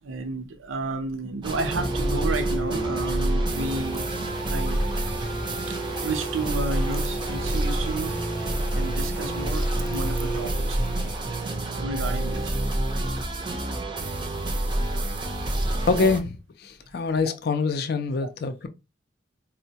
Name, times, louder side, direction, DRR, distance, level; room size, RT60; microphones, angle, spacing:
voice 1, 0.0-4.1 4.5-4.8 5.7-10.8 11.8-13.1 17.3-17.4 18.2-18.3, right 3 dB, 85° right, 0.6 m, -32 dB
sound 1, 1.4-16.2, right 1 dB, 25° right, 0.5 m, -28 dB
sound 2, 1.5-11.2, right 1 dB, 20° left, 0.7 m, -33 dB
voice 2, 15.9-16.4 16.6-18.7, left 4 dB, 50° left, 0.4 m, -25 dB
4.3 x 2.1 x 2.7 m
head